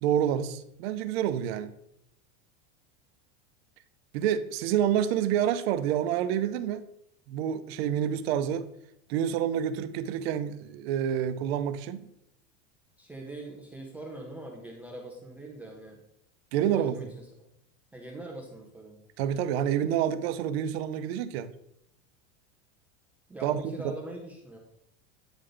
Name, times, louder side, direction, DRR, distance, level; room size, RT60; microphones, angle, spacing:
voice 1, 0.0-1.7 4.1-6.9 7.3-8.7 9.1-12.1 16.5-17.0 19.2-21.5 23.4-23.9, right 10 dB, 60° right, 0.6 m, -28 dB
voice 2, 13.0-16.0 16.6-17.3 17.9-19.0 23.3-24.6, right 2 dB, 5° right, 0.3 m, -42 dB
8.9 x 3.2 x 3.8 m
supercardioid pair, 170°, 35 cm